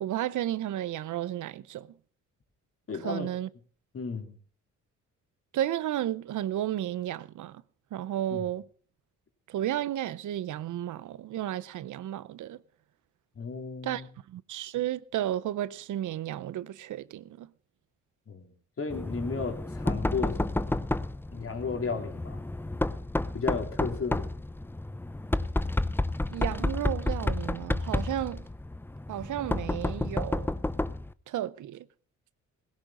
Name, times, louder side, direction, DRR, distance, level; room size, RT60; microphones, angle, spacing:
voice 1, 0.0-1.9 2.9-3.5 5.5-7.6 7.9-8.6 9.5-12.6 13.8-14.0 14.3-17.5 26.3-28.4 29.1-30.5 31.3-31.9, right 12 dB, 70° right, 0.7 m, -33 dB
voice 2, 2.9-3.3 3.9-4.3 8.3-8.5 13.3-14.1 18.3-18.5 18.8-20.8 21.3-22.4 23.3-24.3, left 5 dB, 45° left, 3.3 m, -34 dB
Knock, 18.9-31.1, left 2 dB, 5° left, 0.6 m, -31 dB
17.5 x 15.5 x 3.8 m
cardioid pair, 80°, 31 cm